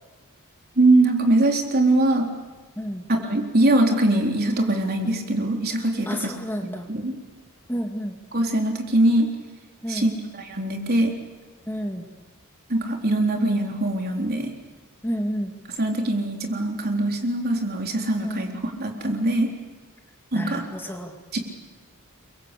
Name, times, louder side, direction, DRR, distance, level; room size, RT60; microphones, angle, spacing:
voice 1, 0.8-2.3 3.1-6.3 6.9-7.1 8.3-9.3 9.9-11.1 12.7-14.5 15.8-19.5 20.3-20.6 21.3-21.4, right 1 dB, 50° right, 2 dB, 4.0 m, -22 dB
voice 2, 2.8-3.1 6.1-6.9 7.7-8.2 9.8-10.1 11.7-12.0 15.0-15.5 18.2-18.4 20.3-21.1, equal, 10° left, 3 dB, 2.3 m, -30 dB
29.0 x 24.0 x 8.5 m, 1.3 s
head